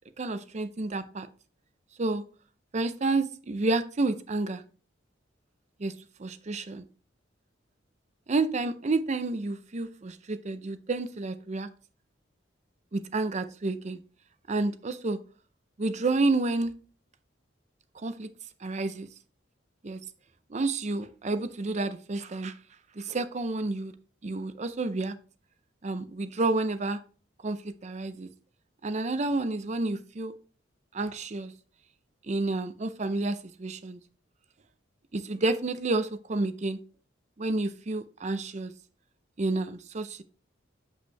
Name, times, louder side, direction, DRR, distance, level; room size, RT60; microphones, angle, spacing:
voice 1, 0.2-1.3 2.0-2.2 2.7-4.6 5.8-5.9 6.2-6.8 8.3-11.7 12.9-14.0 14.5-15.2 15.8-16.7 18.0-18.3 18.6-19.1 19.8-20.0 20.5-22.5 23.0-23.9 24.2-25.2 25.8-27.0 27.4-28.3 28.8-30.3 30.9-31.5 32.3-34.0 35.1-36.8 37.4-38.7 39.4-40.2, right 2 dB, 35° right, 12 dB, 0.5 m, -30 dB
8.1 x 5.4 x 3.2 m, 0.39 s
head